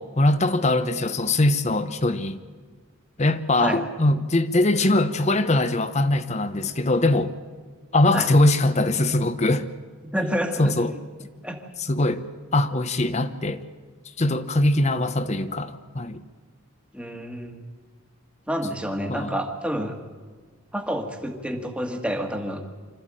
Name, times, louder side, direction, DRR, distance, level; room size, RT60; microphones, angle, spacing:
voice 1, 0.0-2.4 3.2-7.3 7.9-9.7 10.6-11.0 11.8-12.2 12.5-13.6 14.2-16.2 19.1-19.3, left 2 dB, 30° left, 11 dB, 0.8 m, -22 dB
voice 2, 10.1-10.9 11.4-11.6 16.9-17.6 18.5-20.0 20.7-22.7, equal, 5° right, 4 dB, 1.6 m, -28 dB
25.5 x 13.5 x 8.9 m, 1.5 s
head